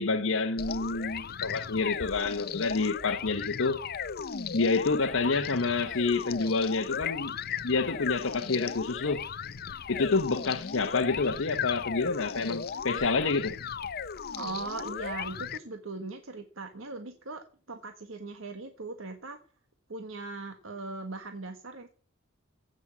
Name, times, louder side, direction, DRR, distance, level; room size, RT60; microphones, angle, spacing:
voice 1, 0.0-3.8 4.5-7.4 7.6-9.2 9.9-13.6, left 3 dB, 75° left, 1.0 m, -28 dB
sound 1, 0.6-15.6, left 7 dB, 50° left, 0.6 m, -36 dB
voice 2, 14.3-19.4 19.9-21.9, right 3 dB, 75° right, 1.5 m, -39 dB
16.0 x 6.4 x 8.5 m
head